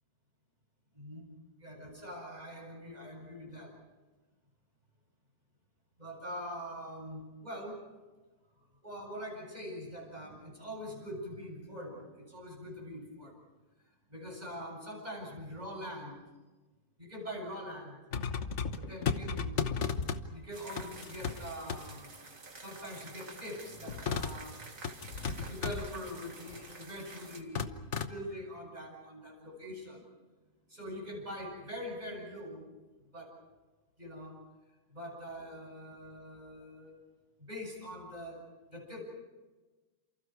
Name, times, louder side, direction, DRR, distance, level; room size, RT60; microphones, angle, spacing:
voice 1, 0.9-1.3 1.6-3.7 6.0-7.8 8.8-13.3 14.1-16.2 17.0-18.0 18.7-19.7 20.3-22.1 22.5-27.7 28.1-30.0 30.7-32.6 33.1-33.3 34.0-34.4 34.9-37.0 37.4-38.4 38.7-39.0, equal, 25° right, -1 dB, 8.0 m, -43 dB
sound 1, 18.1-20.3 20.8-21.4 21.7-21.8 23.9-24.4 24.8-25.9 26.5-26.8 27.6-28.1, left 6 dB, 50° left, 1.3 m, -34 dB
sound 2, 20.5-27.4, right 3 dB, 60° right, 2.6 m, -50 dB
29.5 x 28.5 x 4.8 m, 1.2 s
omnidirectional pair, 1.6 m